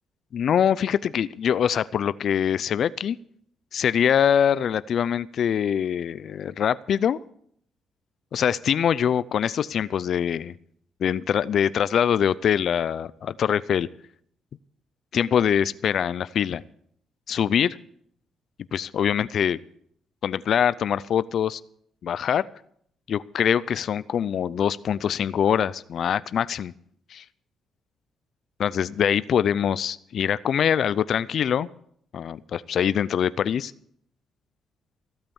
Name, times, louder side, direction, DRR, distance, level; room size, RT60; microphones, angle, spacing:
voice 1, 0.3-3.2 3.7-7.2 8.3-10.5 11.0-13.9 15.1-16.6 17.3-17.8 18.7-19.6 20.2-21.6 22.0-22.5 23.1-26.7 27.1-27.2 28.6-31.7 32.1-33.7, left 8 dB, 60° left, 18 dB, 0.5 m, -23 dB
15.5 x 8.7 x 7.1 m, 0.66 s
cardioid pair, 90°, 0 cm